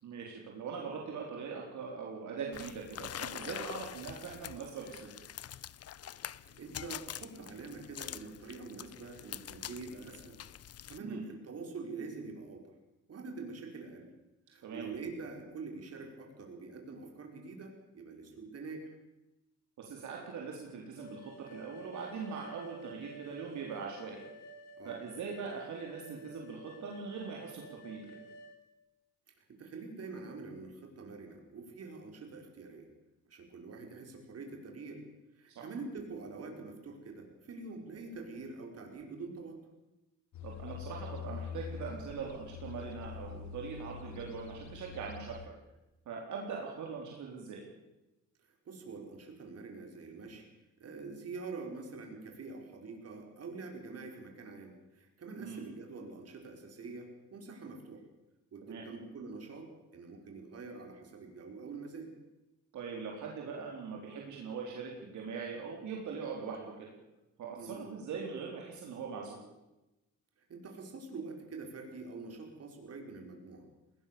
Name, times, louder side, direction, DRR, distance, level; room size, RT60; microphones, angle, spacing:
voice 1, 0.0-5.1 11.0-11.2 14.6-14.9 19.8-24.2 24.8-28.0 35.6-35.7 40.4-45.6 46.1-47.7 55.3-55.6 58.6-58.8 62.7-66.9 67.4-69.4, right 5 dB, 75° right, -1 dB, 4.1 m, -41 dB
sound 1, 2.5-11.0, left 11 dB, 55° left, 0.8 m, -45 dB
voice 2, 6.4-10.4 10.9-12.7 13.1-14.1 14.5-19.0 24.8-25.0 29.4-32.9 33.3-35.0 35.3-39.6 48.4-50.4 50.8-58.1 58.5-62.1 67.6-67.8 70.4-73.7, right 4 dB, 55° right, 3 dB, 5.3 m, -45 dB
sound 2, 21.0-28.5, right 1 dB, 90° left, 7.0 m, -52 dB
sound 3, 40.3-45.5, left 7 dB, 70° left, 1.9 m, -44 dB
20.5 x 19.0 x 7.0 m, 0.99 s
cardioid pair, 90°, 30 cm